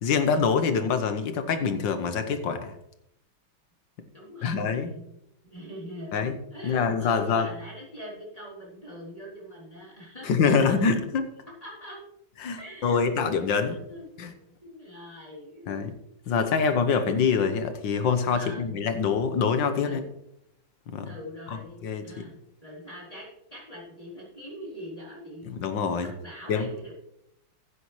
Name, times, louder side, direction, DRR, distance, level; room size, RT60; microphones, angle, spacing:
voice 1, 0.0-2.7 4.4-4.9 6.1-6.4 6.6-7.5 10.2-11.3 12.4-13.8 14.2-14.3 15.7-15.9 16.3-20.0 20.9-21.1 21.8-22.3 25.4-26.1 26.5-26.7, left 5 dB, 70° left, 9 dB, 1.7 m, -25 dB
voice 2, 4.1-5.1 5.5-6.2 6.5-10.7 11.6-12.0 12.6-14.1 14.6-15.7 16.2-16.4 18.3-18.8 19.8-20.1 21.0-25.5 26.0-26.9, equal, 15° left, -5 dB, 3.5 m, -43 dB
15.5 x 8.6 x 3.2 m, 0.78 s
omnidirectional pair, 2.2 m